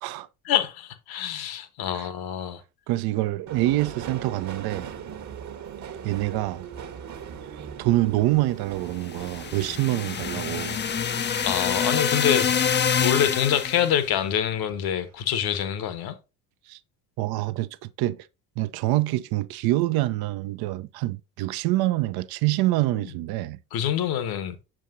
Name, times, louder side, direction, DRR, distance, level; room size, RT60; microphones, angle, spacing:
voice 1, 0.4-2.6 11.4-12.5 13.0-16.2 22.9-23.1 23.7-24.6, left 9 dB, 60° left, 1.3 m, -26 dB
voice 2, 2.9-4.9 6.0-6.6 7.8-10.8 16.7-16.8 17.2-18.3 18.6-23.6, right 17 dB, 60° right, 0.7 m, -26 dB
Subway metro underground, 3.5-14.2 14.5-15.3 15.5-15.7, right 8 dB, 40° right, 1.2 m, -41 dB
sound 1, 9.0-14.0, left 7 dB, 25° left, 0.6 m, -26 dB
7.6 x 7.3 x 2.7 m
hypercardioid pair, 55°, 43 cm